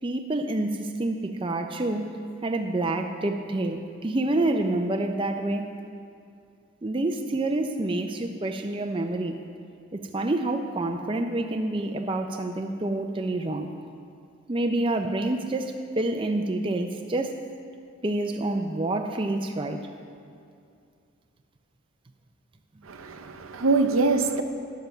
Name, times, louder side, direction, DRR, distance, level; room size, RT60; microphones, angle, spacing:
voice 1, 0.0-5.7 6.8-9.4 9.9-13.7 14.5-17.4 18.0-19.9, right 2 dB, 25° right, 5 dB, 0.4 m, -28 dB
voice 2, 22.9-24.4, right 3 dB, 80° right, 6 dB, 0.7 m, -24 dB
10.5 x 7.0 x 6.5 m, 2.4 s
head